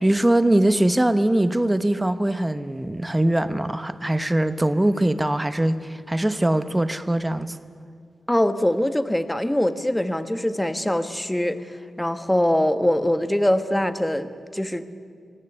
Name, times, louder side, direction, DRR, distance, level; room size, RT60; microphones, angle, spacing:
voice 1, 0.0-7.6, right 1 dB, 10° right, 1.0 m, -22 dB
voice 2, 8.3-11.6 12.0-14.3 14.5-14.8, left 1 dB, 5° left, 1.3 m, -22 dB
26.5 x 18.0 x 9.9 m
wide cardioid pair, 115°, 0 cm